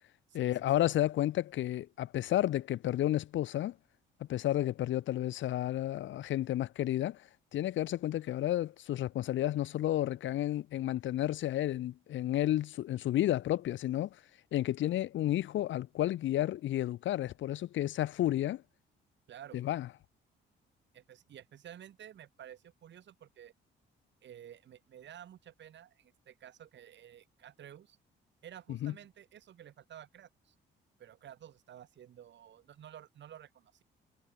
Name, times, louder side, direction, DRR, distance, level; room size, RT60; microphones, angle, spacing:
voice 1, 0.3-3.7 4.2-7.2 7.5-14.1 14.5-18.6 19.5-19.9 28.8-28.9, left 13 dB, 75° left, 1.0 m, -31 dB
voice 2, 19.3-19.6 20.9-23.5 24.2-28.0 28.4-30.5 31.0-33.8, right 10 dB, 65° right, 3.0 m, -52 dB
cardioid pair, 90°, 20 cm